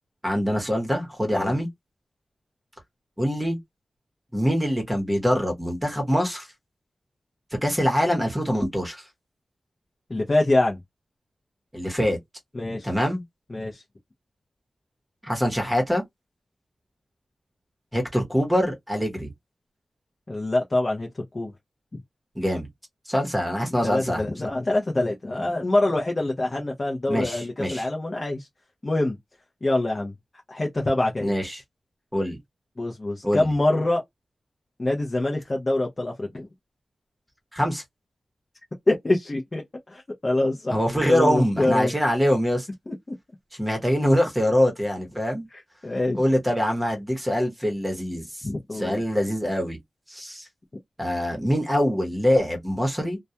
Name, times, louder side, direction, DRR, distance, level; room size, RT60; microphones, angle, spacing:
voice 1, 0.2-1.7 3.2-3.6 4.3-6.5 7.6-9.0 11.7-12.2 12.8-13.2 15.2-16.0 17.9-19.3 22.4-22.7 23.1-24.2 27.1-27.8 31.2-31.6 32.1-32.4 33.2-33.5 37.5-37.8 40.7-42.7 43.6-45.5 46.2-48.5 48.7-49.8 50.1-50.4 51.0-53.2, equal, 10° right, 0.9 m, -24 dB
voice 2, 10.1-10.8 12.5-12.9 13.5-13.8 20.3-21.1 21.3-21.5 23.8-28.5 28.8-29.2 29.6-30.1 30.5-31.3 32.8-34.0 34.8-36.5 38.9-39.6 39.9-41.9 42.9-43.0 45.5-46.2 48.4-49.0, left 2 dB, 35° left, 0.6 m, -25 dB
2.2 x 2.2 x 2.7 m
wide cardioid pair, 80°, 0 cm